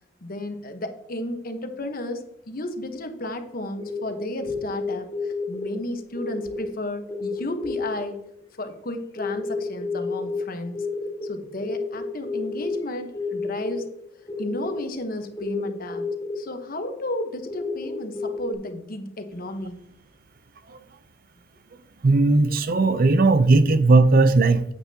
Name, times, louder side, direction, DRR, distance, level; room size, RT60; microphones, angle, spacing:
voice 1, 0.2-8.2 8.6-10.9 11.2-13.9 14.4-16.0 16.4-19.8, left 1 dB, 50° left, 1.1 m, -33 dB
sound 1, 3.8-5.8 6.2-6.7 7.1-8.0 9.2-10.4 10.7-12.8 13.1-13.8 14.3-14.8 15.4-16.4 17.0-18.5, left 3 dB, 20° left, 1.0 m, -30 dB
voice 2, 22.0-24.7, right 3 dB, 50° right, 0.5 m, -17 dB
9.4 x 8.1 x 2.8 m
head